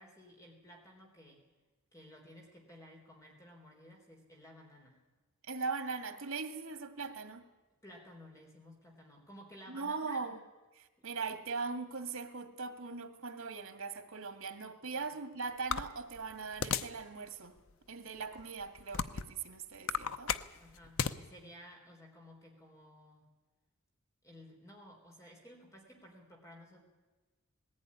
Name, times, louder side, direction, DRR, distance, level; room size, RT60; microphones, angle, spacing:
voice 1, 0.0-1.4 1.9-5.0 7.8-10.2 15.0-15.1 20.6-23.3 24.2-26.8, equal, 15° left, 0 dB, 3.8 m, -55 dB
voice 2, 5.5-7.5 9.7-10.4 10.7-17.6 17.9-20.3, right 4 dB, 85° right, 7 dB, 2.1 m, -40 dB
sound 1, 15.7-17.0 17.6-17.7 18.4-19.4 19.7-21.2, left 7 dB, 70° left, 0.8 m, -34 dB
20.0 x 15.5 x 9.8 m, 1.2 s
head